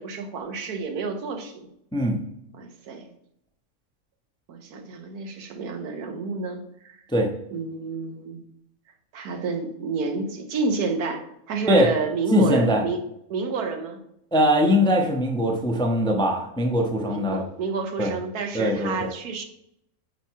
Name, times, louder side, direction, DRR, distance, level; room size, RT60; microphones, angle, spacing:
voice 1, 0.0-1.7 2.5-3.1 4.5-7.0 7.5-8.4 9.1-13.0 13.3-14.0 17.1-19.4, right 4 dB, 90° right, 5 dB, 1.4 m, -30 dB
voice 2, 12.3-12.8 14.3-17.4 18.0-18.1 18.5-19.1, equal, 5° left, 2 dB, 0.4 m, -21 dB
5.6 x 4.5 x 4.6 m, 0.78 s
omnidirectional pair, 1.6 m